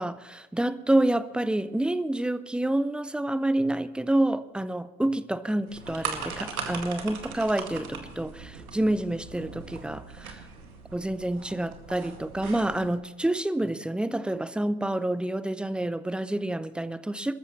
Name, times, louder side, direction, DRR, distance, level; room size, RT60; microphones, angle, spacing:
voice 1, 0.0-10.4 10.9-17.3, right 1 dB, ahead, 0.5 m, -28 dB
sound 1, 5.7-13.0, right 5 dB, 80° right, 2.2 m, -39 dB
27.0 x 14.0 x 3.1 m
figure-of-eight pair, 70°, 43 cm